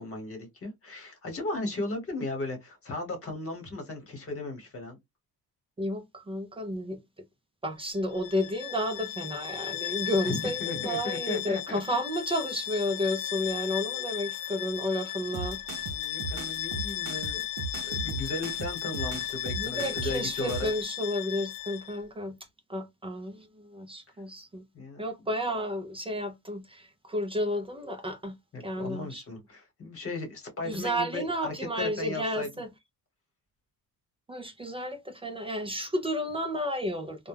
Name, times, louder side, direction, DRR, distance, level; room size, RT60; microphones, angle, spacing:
voice 1, 0.0-5.0 10.2-12.0 15.9-17.4 17.8-20.7 24.7-25.0 28.5-32.5, left 2 dB, 35° left, 1.1 m, -36 dB
voice 2, 5.8-7.0 7.6-15.6 19.5-22.3 22.7-24.6 25.0-28.3 28.6-29.2 30.6-32.7 34.3-37.3, equal, 15° right, 0.3 m, -32 dB
Bowed string instrument, 8.1-22.0, left 14 dB, 65° left, 0.5 m, -36 dB
sound 1, 15.3-20.8, right 4 dB, 75° right, 0.6 m, -37 dB
2.2 x 2.1 x 3.2 m
cardioid pair, 150°, 36 cm